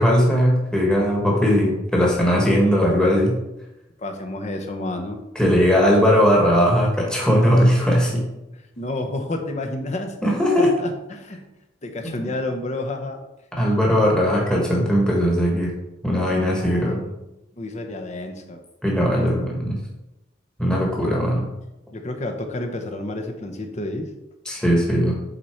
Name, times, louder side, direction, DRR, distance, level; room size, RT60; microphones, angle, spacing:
voice 1, 0.0-3.4 5.3-8.2 10.2-10.7 12.0-12.2 13.5-15.7 16.0-17.0 18.8-19.8 20.6-21.4 24.4-25.1, equal, 5° left, -3 dB, 1.3 m, -19 dB
voice 2, 4.0-5.2 8.8-10.2 10.6-11.4 11.8-13.2 16.5-17.1 17.6-18.6 21.0-21.1 21.9-24.1, left 2 dB, 35° left, 4 dB, 0.9 m, -30 dB
8.2 x 4.2 x 4.4 m, 0.95 s
head